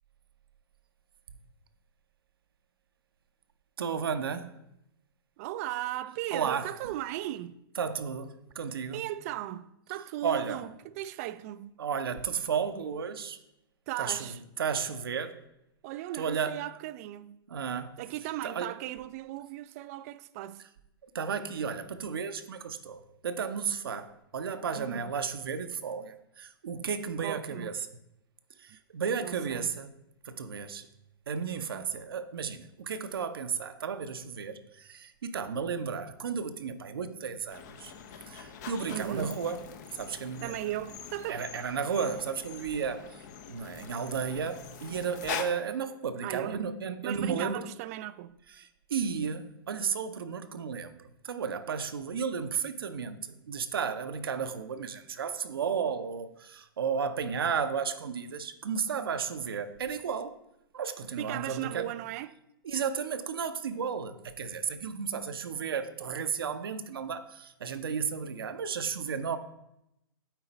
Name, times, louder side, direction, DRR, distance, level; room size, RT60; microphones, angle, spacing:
voice 1, 3.8-4.6 6.3-6.7 7.8-9.0 10.2-10.6 11.8-13.4 14.0-14.3 14.6-15.4 16.2-16.6 17.5-18.0 18.4-18.7 21.0-27.8 28.6-29.9 30.2-30.9 31.3-37.9 38.3-39.6 39.9-40.5 41.3-43.0 43.5-47.6 48.6-60.4 60.7-61.9 62.6-69.4, right 6 dB, 75° right, 0.7 m, -33 dB
voice 2, 5.4-7.6 8.9-11.7 13.9-14.4 15.8-17.4 18.0-20.7 24.8-25.1 27.2-27.8 29.2-29.8 38.9-39.4 40.4-41.5 46.2-46.7 47.0-48.4 61.2-62.4, right 14 dB, 40° right, 0.4 m, -37 dB
sound 1, 37.5-45.4, left 8 dB, 50° left, 0.8 m, -43 dB
9.0 x 4.2 x 4.0 m
hypercardioid pair, 115°, 12 cm